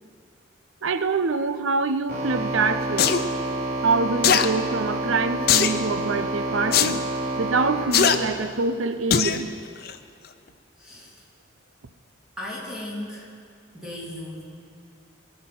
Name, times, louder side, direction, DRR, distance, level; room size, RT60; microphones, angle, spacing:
voice 1, 0.8-3.1 3.8-7.0 7.4-9.5, right 4 dB, 85° right, 11 dB, 0.7 m, -25 dB
sound 1, 2.1-7.9, right 1 dB, 50° right, 3.8 m, -28 dB
sound 2, 3.0-3.2 4.2-4.5 5.5-5.8 6.7-6.9 7.9-8.2 9.1-9.4 9.9-10.0, left 7 dB, 50° left, 0.6 m, -19 dB
voice 2, 10.8-11.1 12.4-13.3 13.7-14.4, left 1 dB, 5° right, -7 dB, 3.1 m, -36 dB
20.0 x 7.5 x 6.0 m, 2.4 s
head